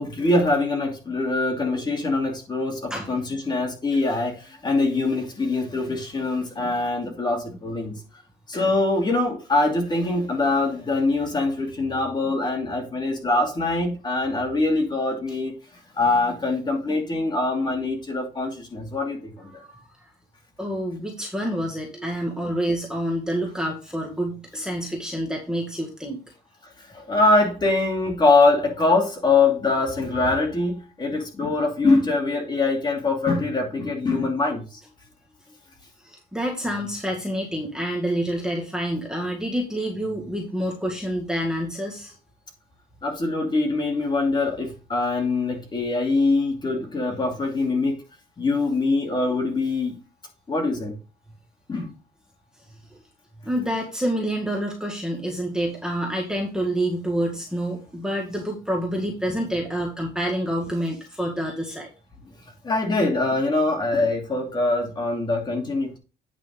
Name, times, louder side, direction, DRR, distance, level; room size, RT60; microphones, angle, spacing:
voice 1, 0.0-8.0 8.5-15.5 15.9-19.6 22.0-22.1 24.7-24.8 26.9-34.8 43.0-48.0 48.4-50.0 50.5-50.9 51.7-51.9 62.6-66.0, left 3 dB, 25° left, 2.8 m, -23 dB
voice 2, 20.6-26.2 36.0-42.1 53.4-61.9, equal, 5° right, 1.7 m, -27 dB
9.1 x 5.3 x 3.8 m
cardioid pair, 110°, 17 cm